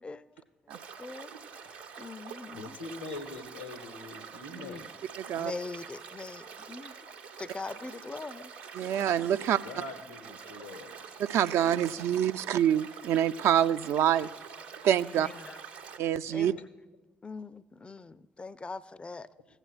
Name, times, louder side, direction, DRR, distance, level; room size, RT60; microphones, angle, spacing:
sound 1, 0.7-16.0, right 6 dB, 80° right, 0.8 m, -46 dB
voice 1, 1.0-1.3 2.0-2.8 4.5-4.8 5.3-7.0 7.4-8.5 15.1-15.6 16.3-16.6 17.2-19.3, left 3 dB, 20° left, 0.4 m, -42 dB
voice 2, 2.5-5.1 9.4-11.0 16.2-16.6, left 3 dB, 85° left, 0.9 m, -44 dB
voice 3, 5.2-5.5 8.7-9.6 11.2-14.3 14.8-15.3 16.0-16.5, right 10 dB, 55° right, 0.3 m, -26 dB
16.0 x 8.9 x 2.4 m
figure-of-eight pair, 40°, 5 cm